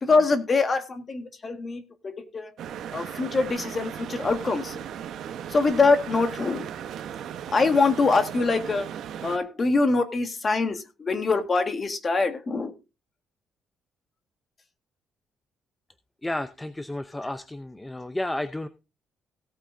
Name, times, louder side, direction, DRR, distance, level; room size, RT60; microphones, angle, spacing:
voice 1, 0.0-2.5 2.9-4.9 5.5-6.7 7.5-8.9 9.2-12.7, left 3 dB, 30° left, 7 dB, 1.7 m, -24 dB
sound 1, 2.6-9.4, right 9 dB, 65° right, 1.0 m, -37 dB
voice 2, 16.2-18.7, left 1 dB, 10° left, 10 dB, 0.6 m, -32 dB
17.0 x 8.6 x 2.6 m, 0.29 s
cardioid pair, 150°, 0 cm